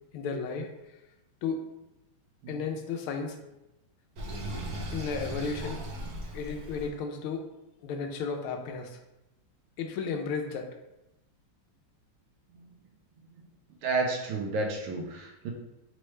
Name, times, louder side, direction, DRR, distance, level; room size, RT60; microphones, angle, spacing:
voice 1, 0.1-0.7 1.4-1.6 2.5-3.4 4.9-5.8 6.3-7.4 7.8-9.0 9.8-10.7, left 5 dB, 80° left, 3 dB, 1.5 m, -33 dB
Sink (filling or washing), 4.2-6.9, right 1 dB, 55° right, 1.1 m, -37 dB
voice 2, 13.8-15.5, right 3 dB, 85° right, 1 dB, 1.6 m, -31 dB
4.3 x 3.2 x 3.1 m, 0.92 s
omnidirectional pair, 2.3 m